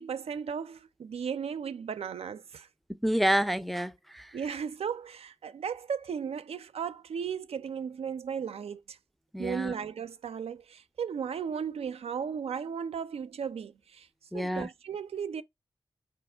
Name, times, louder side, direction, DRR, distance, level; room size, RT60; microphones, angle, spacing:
voice 1, 0.0-2.7 4.3-9.0 9.4-14.1 14.3-15.4, right 7 dB, 80° right, 0.4 m, -35 dB
voice 2, 3.0-4.3 9.3-9.7 14.3-14.7, equal, ahead, 0.4 m, -28 dB
4.3 x 2.9 x 3.3 m
wide cardioid pair, 150°, 10 cm